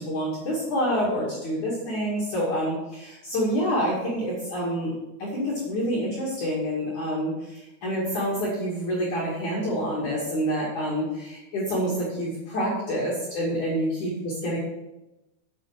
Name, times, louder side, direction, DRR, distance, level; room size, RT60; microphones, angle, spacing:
voice 1, 0.0-14.6, equal, 45° left, -6 dB, 3.1 m, -27 dB
8.8 x 8.6 x 4.8 m, 0.96 s
omnidirectional pair, 5.7 m